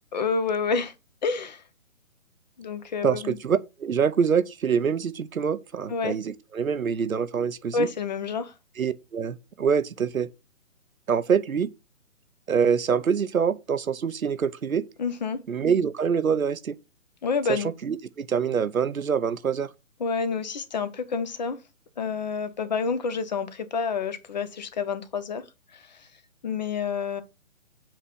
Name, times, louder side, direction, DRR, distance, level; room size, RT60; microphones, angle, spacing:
voice 1, 0.1-0.9 1.2-1.6 2.6-3.4 5.9-6.2 7.7-8.5 15.0-15.4 17.2-17.7 20.0-21.6 22.0-25.4 25.7-26.1 26.4-27.2, left 5 dB, 35° left, 0.7 m, -28 dB
voice 2, 3.0-7.9 8.8-10.3 11.1-11.7 12.5-14.8 15.5-16.8 17.5-19.7, right 6 dB, 80° right, 0.8 m, -25 dB
7.3 x 3.0 x 5.3 m
figure-of-eight pair, 140°, 41 cm